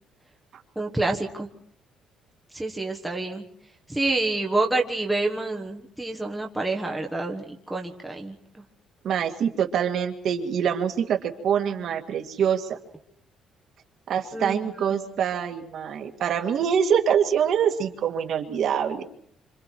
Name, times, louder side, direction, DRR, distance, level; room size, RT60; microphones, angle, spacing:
voice 1, 0.8-1.5 2.5-3.4 3.9-8.3 14.3-14.9, right 2 dB, 5° right, 0 dB, 1.3 m, -28 dB
voice 2, 9.0-12.8 14.1-19.1, right 8 dB, 50° right, 4 dB, 2.1 m, -25 dB
27.5 x 26.5 x 4.6 m, 0.66 s
cardioid pair, 175°, 0 cm